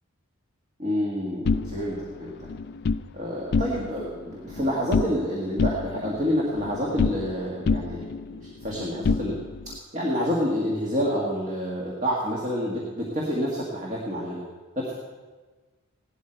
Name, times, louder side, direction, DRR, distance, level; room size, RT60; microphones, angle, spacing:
voice 1, 0.8-2.5 3.1-9.3 9.9-14.4 14.8-14.9, equal, 35° right, -3 dB, 1.7 m, -28 dB
sound 1, 1.4-3.1 3.4-4.1 4.3-5.3 5.6-7.4 7.7-9.8, left 4 dB, 50° left, 0.3 m, -27 dB
16.5 x 12.0 x 4.5 m, 1.3 s
head